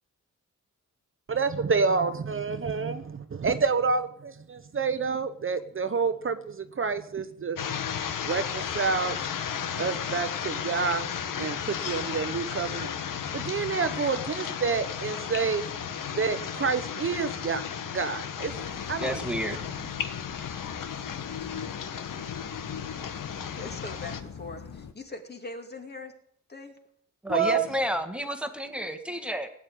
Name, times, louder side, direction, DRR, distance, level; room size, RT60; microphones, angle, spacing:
voice 1, 1.3-7.6 8.2-9.2 9.7-12.9 13.3-15.6 16.1-17.7 17.9-18.6 18.9-19.6 27.3-27.7, right 5 dB, 40° right, 10 dB, 0.9 m, -28 dB
sound 1, 7.6-24.2, left 8 dB, 80° left, 1.2 m, -34 dB
sound 2, 18.5-24.9, left 7 dB, 60° left, 1.3 m, -43 dB
voice 2, 19.0-19.6 27.2-29.5, equal, 5° right, 6 dB, 1.6 m, -31 dB
voice 3, 23.6-26.1 26.5-26.8, left 3 dB, 30° left, 4 dB, 2.4 m, -41 dB
17.5 x 8.9 x 9.2 m, 0.71 s
wide cardioid pair, 110°, 32 cm